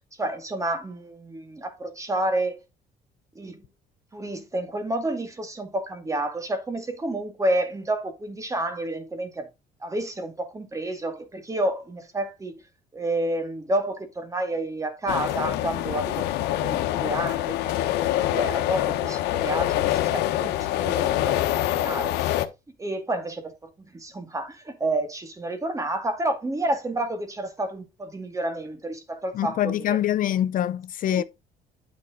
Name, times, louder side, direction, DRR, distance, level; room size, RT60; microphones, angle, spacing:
voice 1, 0.0-2.6 3.4-3.7 4.1-9.5 9.8-12.6 12.9-22.3 22.8-23.5 23.8-30.0 31.0-31.2, right 1 dB, 20° right, 2.3 m, -30 dB
sound 1, 15.1-22.4, left 13 dB, 90° left, 1.1 m, -25 dB
voice 2, 29.3-31.2, left 11 dB, 55° left, 0.5 m, -24 dB
9.5 x 5.3 x 3.8 m
cardioid pair, 110°, 17 cm